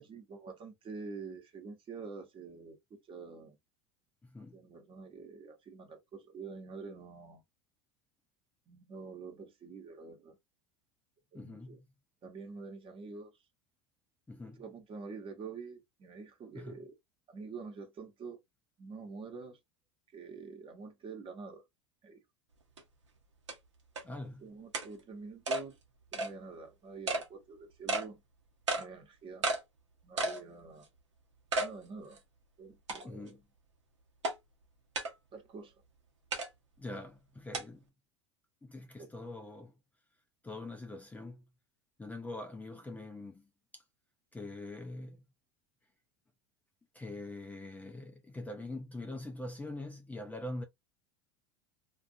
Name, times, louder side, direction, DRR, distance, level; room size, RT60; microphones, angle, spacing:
voice 1, 0.0-3.6 4.4-7.4 8.7-10.4 11.3-11.8 12.2-13.3 14.6-16.9 17.3-18.4 18.8-19.6 20.1-21.6 22.0-22.2 24.4-25.8 26.1-28.2 28.8-29.5 30.0-30.9 31.6-32.2 32.6-33.4 35.3-35.8 39.0-39.1, right 4 dB, 35° right, 1.0 m, -47 dB
voice 2, 4.2-4.6 11.3-11.8 14.3-14.6 16.5-16.8 24.0-24.5 33.0-33.4 36.8-37.8 38.6-39.7 40.4-41.4 42.0-43.4 43.7-43.8 44.3-45.2 46.9-50.6, left 2 dB, 10° left, 0.5 m, -43 dB
sound 1, 22.8-22.9 23.5-23.6 24.0-24.1 24.7-24.9 25.5-25.6 26.1-26.3 27.1-27.2 27.9-28.1 28.7-28.8 29.4-29.6 30.2-30.4 30.8-30.9 31.5-31.7 32.2-32.3 32.9-33.3 34.2-34.3 34.9-35.1 36.3-36.5 37.5-37.6, right 2 dB, 85° right, 0.8 m, -32 dB
2.5 x 2.4 x 2.5 m
hypercardioid pair, 80°, 15 cm